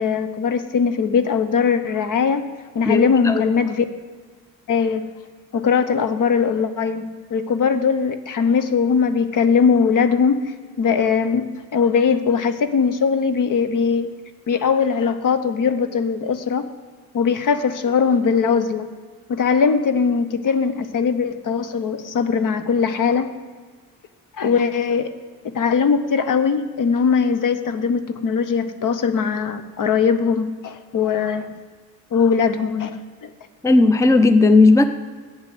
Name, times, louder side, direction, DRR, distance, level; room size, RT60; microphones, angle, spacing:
voice 1, 0.0-2.5 2.7-3.8 4.7-5.1 5.5-10.5 10.8-14.1 14.5-16.7 17.1-18.9 19.3-23.3 24.4-25.1 25.4-31.5 32.1-33.0 33.2-33.3, left 6 dB, 45° left, 10 dB, 1.0 m, -20 dB
voice 2, 2.8-3.5 33.6-34.8, left 3 dB, 5° left, 10 dB, 0.7 m, -14 dB
7.7 x 7.1 x 7.8 m, 1.5 s
hypercardioid pair, 55°, 43 cm